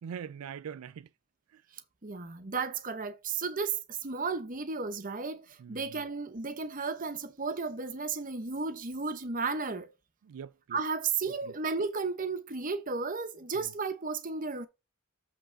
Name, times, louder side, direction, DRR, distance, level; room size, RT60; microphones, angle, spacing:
voice 1, 0.0-1.1 1.5-1.6 5.6-6.0 10.2-10.8 11.4-11.5 13.6-13.7, right 7 dB, 85° right, 0.3 m, -43 dB
voice 2, 2.0-9.9 10.7-14.7, right 4 dB, 40° right, 0.9 m, -34 dB
7.9 x 3.7 x 5.0 m
head